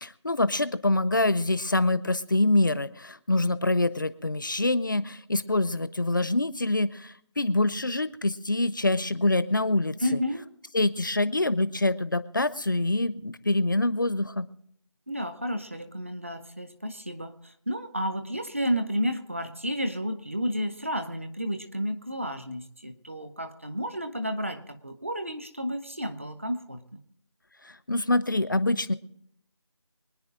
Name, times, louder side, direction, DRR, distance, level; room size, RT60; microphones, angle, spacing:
voice 1, 0.0-10.0 10.7-14.5 27.9-28.9, left 2 dB, 40° left, 15 dB, 0.6 m, -25 dB
voice 2, 10.0-10.5 15.1-27.0, equal, 25° right, 10 dB, 0.6 m, -31 dB
25.0 x 9.5 x 3.7 m, 0.70 s
figure-of-eight pair, 170°, 16 cm